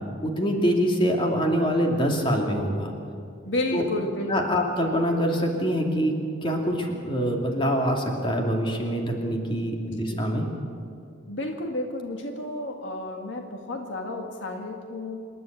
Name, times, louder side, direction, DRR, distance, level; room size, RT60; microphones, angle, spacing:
voice 1, 0.2-2.9 3.7-3.8 4.3-6.1 6.4-10.5, equal, 25° left, 1 dB, 2.7 m, -25 dB
voice 2, 3.5-4.6 10.0-10.2 11.3-15.2, left 2 dB, 70° left, 3 dB, 1.7 m, -31 dB
27.0 x 11.0 x 9.2 m, 2.4 s
head